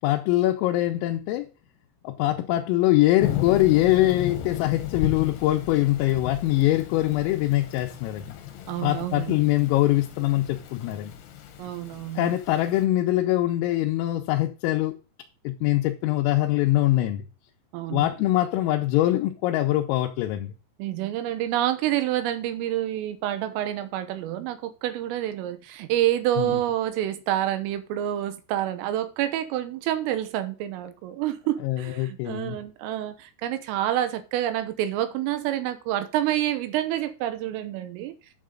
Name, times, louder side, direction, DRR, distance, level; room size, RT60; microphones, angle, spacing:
voice 1, 0.0-1.5 2.1-8.4 8.8-11.1 12.2-14.9 15.5-17.3 17.9-20.6 26.4-26.6 31.6-32.6, left 15 dB, 85° left, 3.4 m, -23 dB
Thunder / Rain, 3.2-12.8, left 11 dB, 70° left, 2.7 m, -35 dB
voice 2, 8.7-9.4 11.6-12.4 17.7-18.1 20.8-38.1, right 12 dB, 80° right, 3.5 m, -28 dB
10.5 x 6.5 x 3.8 m
omnidirectional pair, 5.9 m